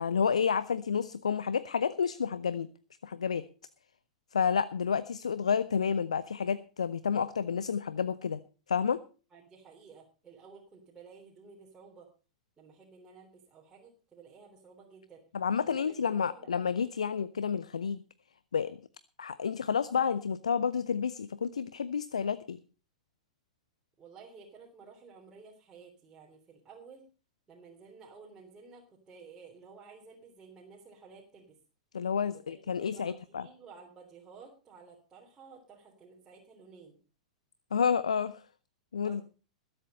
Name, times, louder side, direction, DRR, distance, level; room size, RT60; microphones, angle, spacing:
voice 1, 0.0-2.7 3.0-3.4 4.3-8.4 8.7-9.0 15.3-18.0 18.5-18.8 19.2-22.6 31.9-33.5 37.7-38.4 38.9-39.2, left 6 dB, 70° left, 16 dB, 0.7 m, -30 dB
voice 2, 9.3-12.1 12.6-15.2 15.6-16.5 24.0-27.1 27.5-31.6 32.5-37.0 39.0-39.2, right 5 dB, 20° right, -2 dB, 3.4 m, -53 dB
20.5 x 8.0 x 5.4 m, 0.36 s
figure-of-eight pair, 100°, 4 cm